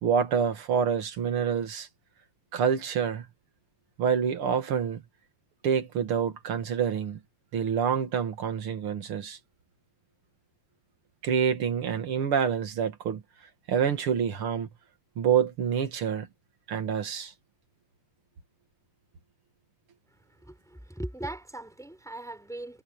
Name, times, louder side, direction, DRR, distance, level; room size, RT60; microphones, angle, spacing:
voice 1, 0.0-1.9 2.5-3.3 4.0-5.0 5.6-7.2 7.5-9.4 11.2-13.2 13.7-14.7 15.2-16.3 16.7-17.3, right 7 dB, 45° right, 2.0 m, -27 dB
voice 2, 20.3-22.8, right 1 dB, ahead, 4.8 m, -39 dB
omnidirectional pair, 4.2 m